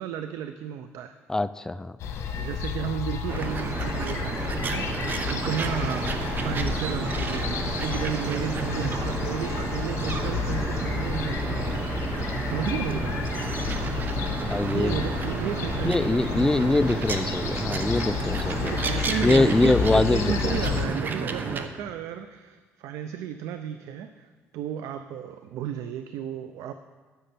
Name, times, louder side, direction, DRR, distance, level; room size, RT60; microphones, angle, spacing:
voice 1, 0.0-1.1 2.4-13.2 14.6-16.7 18.6-26.7, right 9 dB, 90° right, 9 dB, 0.4 m, -33 dB
voice 2, 1.3-2.0 6.1-6.2 14.5-15.0 15.8-18.7 19.2-21.0, left 2 dB, 10° left, 14 dB, 0.3 m, -24 dB
sound 1, 2.0-20.9, left 6 dB, 70° left, 1.2 m, -31 dB
sound 2, 3.3-21.7, right 4 dB, 40° right, 0.8 m, -31 dB
10.0 x 6.5 x 6.8 m, 1.4 s
cardioid pair, 120°, 5 cm